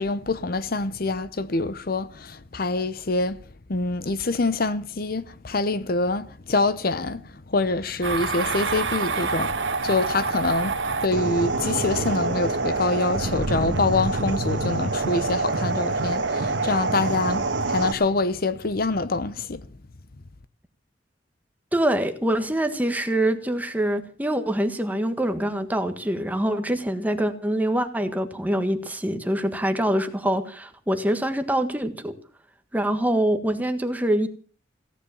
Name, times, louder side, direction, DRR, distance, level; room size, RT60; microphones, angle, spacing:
voice 1, 0.0-19.7, left 3 dB, 55° left, 0.8 m, -26 dB
sound 1, 8.0-17.9, right 3 dB, 85° right, 1.6 m, -26 dB
voice 2, 21.7-32.1 32.7-34.3, right 1 dB, 10° right, 1.5 m, -25 dB
16.5 x 10.0 x 7.0 m
head